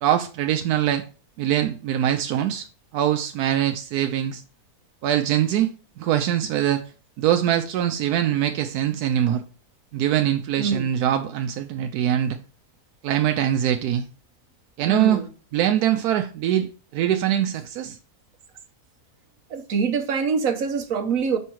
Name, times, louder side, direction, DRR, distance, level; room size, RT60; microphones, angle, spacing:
voice 1, 0.0-1.0 1.4-2.7 2.9-4.4 5.0-5.7 6.0-6.8 7.2-9.4 9.9-12.4 13.0-14.0 14.8-15.2 15.5-18.0, right 11 dB, 85° right, 1.1 m, -23 dB
voice 2, 14.9-15.3 19.5-21.4, right 5 dB, 65° right, 1.4 m, -24 dB
5.6 x 5.4 x 4.5 m
omnidirectional pair, 1.6 m